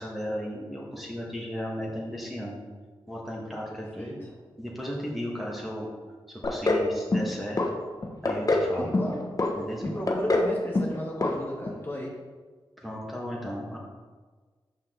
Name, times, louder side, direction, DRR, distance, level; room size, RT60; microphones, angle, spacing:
voice 1, 0.0-2.6 3.1-4.2 4.6-5.9 6.3-7.6 8.2-8.9 9.6-9.9 12.8-13.8, equal, ahead, -4 dB, 2.0 m, -35 dB
voice 2, 4.0-4.4 8.8-9.4 9.8-12.2, equal, 20° left, -4 dB, 1.9 m, -34 dB
sound 1, 6.4-6.9 7.1-7.7 8.0-8.7 8.9-9.5 9.8-10.5 10.7-11.0 11.2-11.3 11.7-11.8, left 2 dB, 40° left, 1.0 m, -24 dB
6.3 x 5.7 x 4.0 m, 1.4 s
cardioid pair, 40°, 10 cm